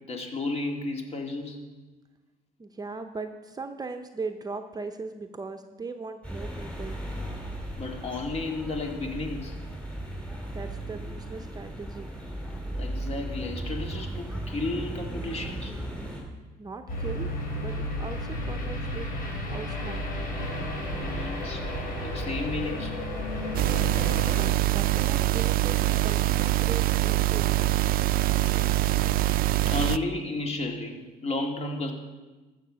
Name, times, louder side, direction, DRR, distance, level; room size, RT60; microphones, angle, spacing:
voice 1, 0.1-1.6 7.8-9.6 12.7-15.8 21.0-23.0 29.7-31.9, left 2 dB, 40° left, 2 dB, 2.1 m, -33 dB
voice 2, 2.6-7.0 10.5-12.1 16.6-19.1 19.4-20.0 24.3-27.6, right 4 dB, 20° right, 6 dB, 0.7 m, -39 dB
sound 1, 6.2-16.2, right 1 dB, 5° left, 3.3 m, -36 dB
sound 2, 16.9-24.4, left 1 dB, 55° left, 4.5 m, -32 dB
sound 3, 23.5-30.0, right 15 dB, 60° right, 0.4 m, -24 dB
13.5 x 7.4 x 6.2 m, 1.2 s
cardioid pair, 110°, 17 cm